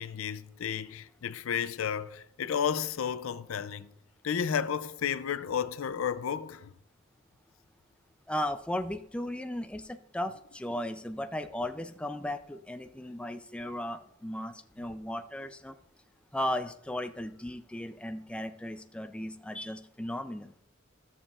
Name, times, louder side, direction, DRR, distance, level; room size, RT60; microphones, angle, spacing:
voice 1, 0.0-3.9 4.2-6.7, left 7 dB, 80° left, 0.4 m, -32 dB
voice 2, 8.3-15.8 16.3-20.5, left 1 dB, 5° left, 0.3 m, -36 dB
13.0 x 7.1 x 2.4 m
head